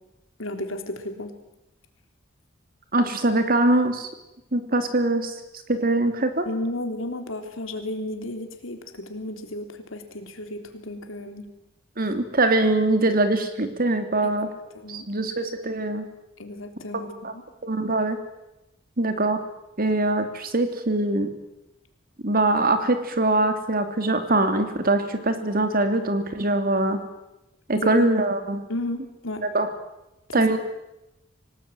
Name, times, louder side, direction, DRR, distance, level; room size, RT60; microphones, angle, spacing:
voice 1, 0.4-1.3 6.5-11.5 14.2-14.3 14.7-15.1 16.4-17.4 27.7-28.1 28.7-29.4 30.3-30.6, left 1 dB, 85° left, 6 dB, 3.6 m, -33 dB
voice 2, 2.9-4.1 4.5-5.3 5.7-6.5 12.0-14.5 14.9-16.0 17.2-17.3 17.6-18.2 19.0-19.4 19.8-21.3 22.2-27.0 27.7-28.6 29.4-29.7 30.3-30.6, right 2 dB, 50° right, 8 dB, 3.0 m, -22 dB
25.5 x 19.0 x 9.3 m, 0.94 s
head